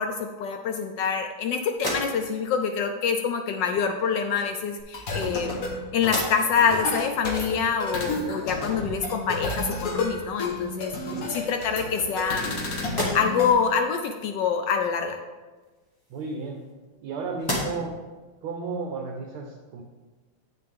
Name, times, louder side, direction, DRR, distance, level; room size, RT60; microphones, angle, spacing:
voice 1, 0.0-5.6 5.9-10.9 11.3-12.5 12.9-15.2, left 6 dB, 75° left, 6 dB, 1.0 m, -26 dB
sound 1, 1.7-2.5 3.7-3.8 4.8-5.6 6.0-6.7 7.2-7.3 10.0-10.1 10.5-11.2 11.8-12.5 12.8-13.6 15.6-17.0 17.4-18.0, equal, 10° left, 1.3 m, -34 dB
sound 2, 4.8-13.5, left 2 dB, 50° left, 1.3 m, -31 dB
voice 2, 16.1-16.6 17.0-17.9 18.4-19.8, right 4 dB, 80° right, 0 dB, 1.7 m, -33 dB
8.4 x 6.6 x 3.6 m, 1.3 s
omnidirectional pair, 2.3 m